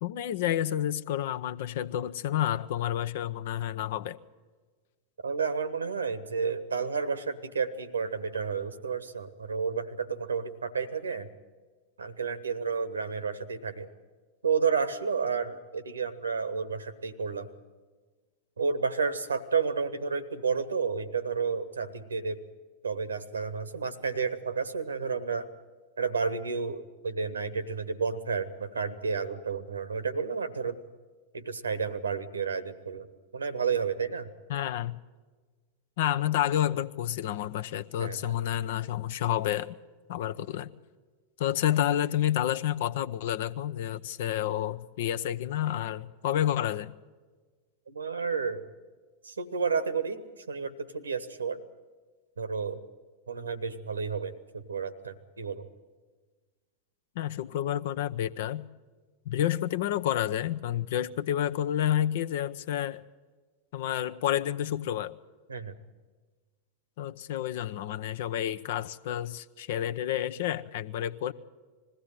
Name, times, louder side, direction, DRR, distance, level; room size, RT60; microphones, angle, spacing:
voice 1, 0.0-4.2 34.5-35.0 36.0-39.8 40.1-40.7 41.4-46.9 57.2-58.6 59.3-63.0 63.7-65.2 67.0-71.3, left 11 dB, 55° left, 0.7 m, -29 dB
voice 2, 5.2-11.3 12.0-13.9 14.4-17.5 18.6-22.4 22.8-25.5 26.0-30.8 31.3-33.1 33.3-34.3 38.0-38.3 47.9-48.7 49.2-50.2 50.5-51.6 52.4-52.8 53.3-55.7 65.5-65.7, right 5 dB, 75° right, 1.2 m, -31 dB
21.0 x 16.0 x 9.1 m
figure-of-eight pair, 90°, 0 cm